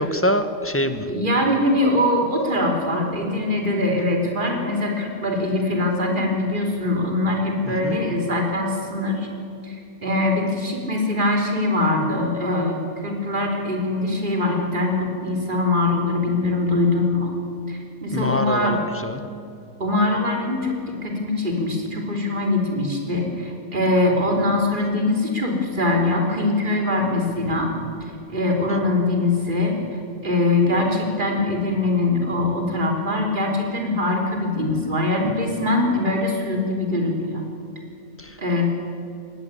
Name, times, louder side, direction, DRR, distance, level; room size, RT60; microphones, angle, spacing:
voice 1, 0.0-1.0 7.7-8.0 18.1-18.8 19.0-19.2 38.2-38.3, left 1 dB, 10° left, 10 dB, 1.1 m, -24 dB
voice 2, 1.1-9.3 9.6-9.8 10.0-17.3 17.7-18.8 19.8-27.7 28.3-29.8 30.2-37.4 38.4-38.6, left 2 dB, 35° right, 1 dB, 3.6 m, -22 dB
19.0 x 17.0 x 9.8 m, 2.5 s
omnidirectional pair, 1.5 m